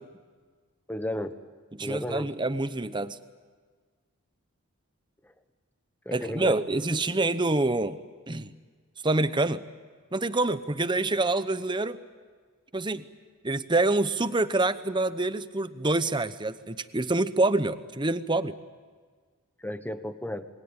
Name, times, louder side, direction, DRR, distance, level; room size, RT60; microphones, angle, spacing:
voice 1, 0.9-1.3 1.8-2.3 6.0-6.6 19.6-20.4, left 1 dB, 10° left, 10 dB, 1.2 m, -33 dB
voice 2, 1.7-3.2 6.1-8.0 8.3-8.5 9.0-9.6 10.1-12.0 12.7-13.0 13.4-18.5, right 2 dB, 20° right, 13 dB, 0.9 m, -26 dB
28.0 x 22.0 x 8.9 m, 1.5 s
head